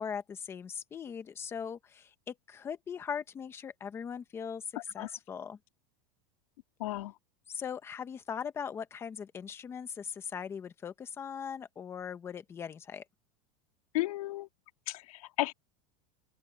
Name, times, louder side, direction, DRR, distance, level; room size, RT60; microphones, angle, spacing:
voice 1, 0.0-4.6 4.9-5.6 7.5-13.0, left 7 dB, 15° left, 0.8 m, -40 dB
voice 2, 6.8-7.1 13.9-14.5 14.9-15.5, left 18 dB, 75° left, 3.3 m, -33 dB
open air
supercardioid pair, 180°, 18 cm